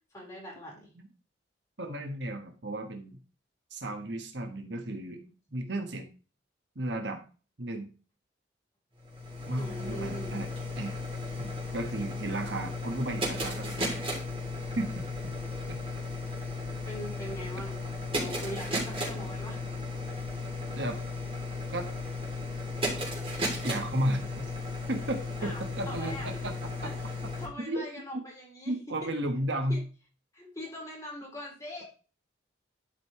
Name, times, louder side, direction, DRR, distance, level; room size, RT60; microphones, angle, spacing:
voice 1, 0.1-0.9 9.6-10.4 16.9-19.7 20.7-20.8 25.4-26.4 26.8-26.9 27.4-29.1 29.7-29.8 30.3-31.8, equal, 20° left, -3 dB, 4.3 m, -42 dB
voice 2, 1.8-3.2 3.7-5.2 5.5-6.1 6.7-7.2 7.6-7.9 9.5-10.5 10.8-11.0 11.3-14.1 14.8-15.3 15.7-15.8 20.7-21.0 21.7-21.9 23.6-24.5 24.9-26.6 26.8-26.9 27.6-28.2 28.7-29.8, right 1 dB, 70° right, 4 dB, 1.4 m, -34 dB
sound 1, 9.0-27.5, left 2 dB, 30° right, 3.0 m, -35 dB
11.5 x 5.3 x 3.2 m, 0.35 s
head